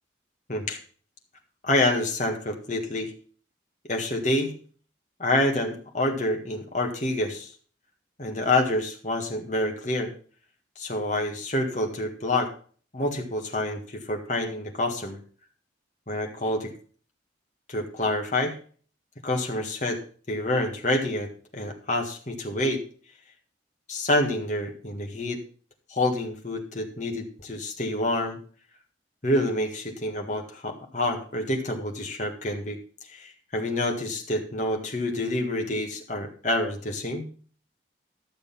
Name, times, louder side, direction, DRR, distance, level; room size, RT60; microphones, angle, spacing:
voice 1, 1.6-3.1 3.9-4.5 5.2-7.5 8.2-10.1 10.8-12.5 12.9-15.2 16.1-16.7 17.7-18.6 19.2-20.0 20.3-22.8 23.9-25.4 25.9-28.4 29.2-37.3, left 1 dB, 40° left, 2 dB, 1.8 m, -27 dB
12.0 x 6.8 x 5.4 m, 0.43 s
head